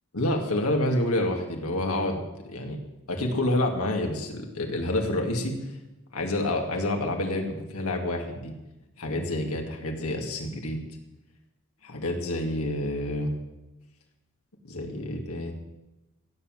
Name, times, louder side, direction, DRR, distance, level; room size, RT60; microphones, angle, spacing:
voice 1, 0.1-2.8 3.1-5.6 6.1-8.5 9.0-10.8 11.8-13.3 14.6-15.5, left 1 dB, 85° left, 2 dB, 2.3 m, -28 dB
16.5 x 7.7 x 7.8 m, 0.99 s
head